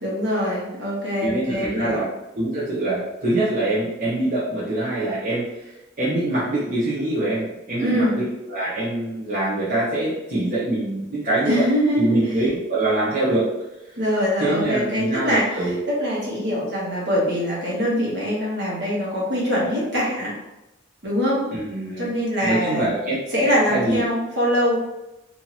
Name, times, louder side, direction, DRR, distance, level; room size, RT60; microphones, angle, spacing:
voice 1, 0.0-2.0 7.8-8.2 11.4-12.2 14.0-20.3 21.0-21.4 22.0-22.9 23.3-24.8, equal, 60° right, -5 dB, 1.3 m, -23 dB
voice 2, 1.2-2.1 2.3-5.7 6.0-11.7 12.0-13.5 14.4-15.8 17.8-17.9 21.5-22.1 22.4-23.2 23.7-24.0, right 1 dB, 45° right, -10 dB, 0.9 m, -24 dB
3.0 x 2.7 x 4.1 m, 0.95 s
head